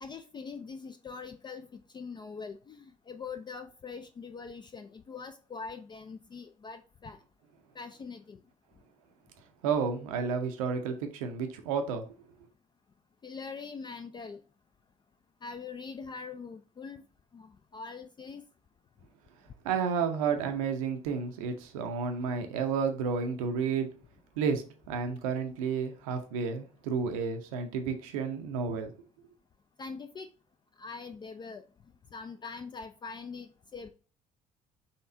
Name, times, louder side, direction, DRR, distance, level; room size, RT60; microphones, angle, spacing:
voice 1, 0.0-7.2 7.7-8.4 13.2-14.4 15.4-17.0 17.3-18.4 29.8-30.3 30.8-31.6 32.1-33.9, left 5 dB, 25° left, 0.4 m, -43 dB
voice 2, 9.6-12.0 19.6-23.9 24.4-28.9, right 5 dB, 70° right, 0.6 m, -31 dB
4.3 x 3.2 x 3.7 m
figure-of-eight pair, 50°, 18 cm